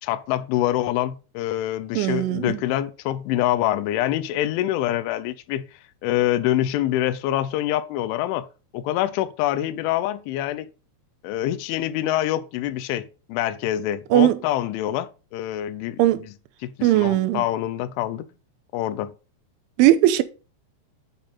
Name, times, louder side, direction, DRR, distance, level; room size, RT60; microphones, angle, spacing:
voice 1, 0.0-5.6 6.0-8.5 8.7-10.7 11.2-16.0 16.6-18.3 18.7-19.1, left 13 dB, 85° left, 3.2 m, -25 dB
voice 2, 1.9-2.6 14.1-14.4 16.0-16.3 16.8-17.4 19.8-20.2, right 14 dB, 90° right, 3.1 m, -18 dB
9.3 x 5.2 x 5.6 m
omnidirectional pair, 5.4 m